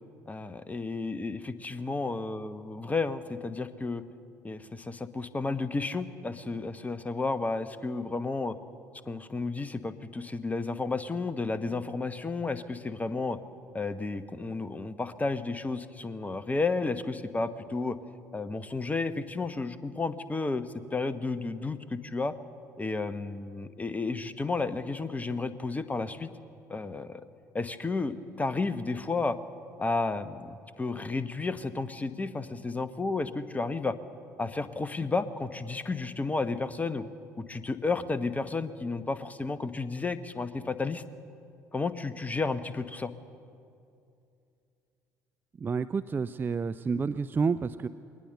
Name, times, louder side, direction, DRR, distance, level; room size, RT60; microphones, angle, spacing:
voice 1, 0.3-4.0 4.4-8.6 9.1-13.4 13.7-18.0 18.3-20.7 20.9-22.3 22.8-26.3 26.7-27.2 27.5-29.4 29.8-34.0 34.4-37.0 37.4-41.0 41.7-43.1, left 3 dB, 15° left, 13 dB, 1.0 m, -32 dB
voice 2, 45.6-47.9, right 5 dB, 25° right, 13 dB, 0.4 m, -29 dB
21.0 x 19.0 x 6.8 m, 2.5 s
figure-of-eight pair, 55°, 9 cm